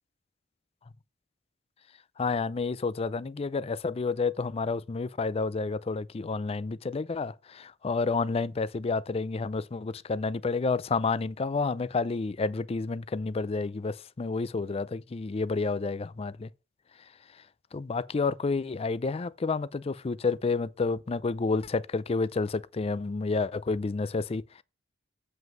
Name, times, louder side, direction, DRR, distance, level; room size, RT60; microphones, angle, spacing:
voice 1, 2.2-16.5 17.7-24.6, left 4 dB, 30° left, 0.4 m, -30 dB
7.7 x 5.4 x 5.2 m
head